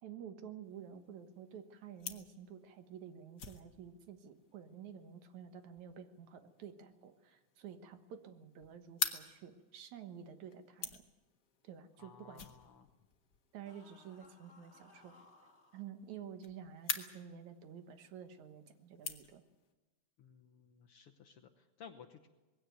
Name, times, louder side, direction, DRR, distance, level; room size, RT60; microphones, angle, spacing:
voice 1, 0.0-11.0 11.6-12.5 13.5-15.1 15.7-19.4, right 8 dB, 70° right, 9 dB, 2.6 m, -50 dB
sound 1, 0.6-19.7, left 6 dB, 45° left, 1.6 m, -48 dB
voice 2, 12.0-12.9 20.2-22.3, left 7 dB, 65° left, 5 dB, 1.5 m, -56 dB
sound 2, 13.6-15.9, left 3 dB, 25° left, 2.4 m, -62 dB
20.5 x 16.5 x 9.3 m, 1.2 s
omnidirectional pair, 3.5 m